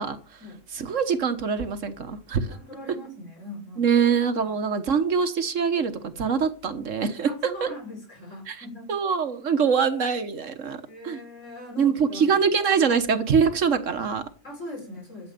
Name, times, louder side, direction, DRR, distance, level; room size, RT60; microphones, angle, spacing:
voice 1, 0.0-0.4 0.7-2.6 3.8-7.3 7.6-7.7 8.5-11.2 11.8-14.2, right 6 dB, 75° right, 9 dB, 1.6 m, -24 dB
voice 2, 2.5-3.9 7.3-8.9 10.9-12.3 14.4-15.3, left 1 dB, 70° left, 1 dB, 5.7 m, -40 dB
13.0 x 7.8 x 6.7 m, 0.39 s
omnidirectional pair, 1.3 m